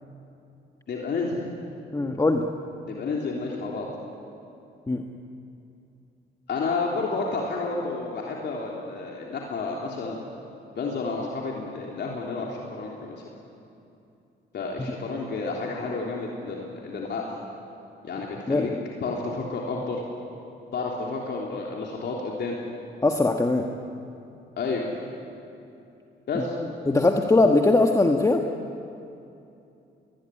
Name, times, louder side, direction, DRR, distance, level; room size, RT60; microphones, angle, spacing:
voice 1, 0.9-1.4 2.9-3.9 6.5-10.2 10.8-13.2 14.5-17.2 18.0-18.7 19.0-20.0 20.7-22.6 24.6-24.9 26.3-26.6, left 3 dB, 60° left, -2 dB, 3.4 m, -30 dB
voice 2, 1.9-2.5 4.9-5.0 14.8-14.9 18.5-18.7 23.0-23.7 26.3-26.4 26.9-28.4, left 2 dB, 15° left, 3 dB, 1.4 m, -21 dB
22.0 x 20.5 x 10.0 m, 2.7 s
cardioid pair, 90°, 20 cm